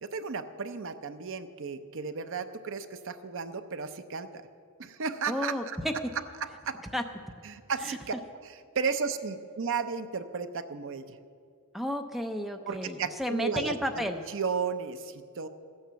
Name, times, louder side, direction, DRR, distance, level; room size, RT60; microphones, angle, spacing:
voice 1, 0.0-4.3 4.8-5.5 6.4-6.8 7.4-8.1 8.7-11.0 12.7-14.1 14.3-15.5, right 5 dB, 60° right, 10 dB, 0.6 m, -34 dB
voice 2, 5.3-6.1 6.9-7.1 7.8-8.0 11.7-14.2, equal, ahead, 5 dB, 0.5 m, -32 dB
14.5 x 9.0 x 6.9 m, 2.3 s
head